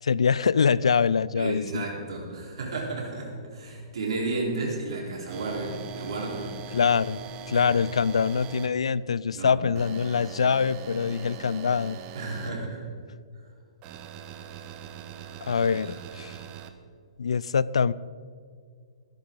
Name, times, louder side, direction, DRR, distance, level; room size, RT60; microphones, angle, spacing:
voice 1, 0.0-1.8 6.7-7.2 7.5-12.0 15.4-16.4 17.2-17.9, left 6 dB, 80° left, 20 dB, 0.4 m, -24 dB
voice 2, 1.3-6.8 7.5-7.7 9.3-9.6 12.1-12.8 15.7-15.9, right 3 dB, 70° right, -2 dB, 4.2 m, -33 dB
sound 1, 5.3-8.7 9.7-12.5 13.8-16.7, right 6 dB, 30° right, 1.2 m, -41 dB
21.5 x 10.5 x 4.0 m, 2.2 s
hypercardioid pair, 130°, 3 cm